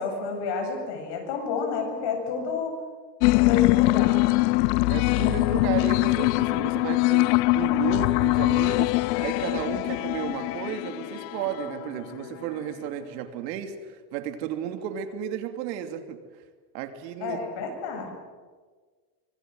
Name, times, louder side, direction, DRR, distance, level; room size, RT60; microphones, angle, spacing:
voice 1, 0.0-2.8 3.3-4.2 17.2-18.1, left 5 dB, 55° left, 3 dB, 8.0 m, -30 dB
sound 1, 3.2-12.2, left 22 dB, 75° left, 0.8 m, -23 dB
voice 2, 4.9-8.9 9.2-16.2 16.7-17.4, right 9 dB, 85° right, 7 dB, 2.9 m, -33 dB
24.5 x 24.0 x 7.8 m, 1.5 s
supercardioid pair, 130°, 48 cm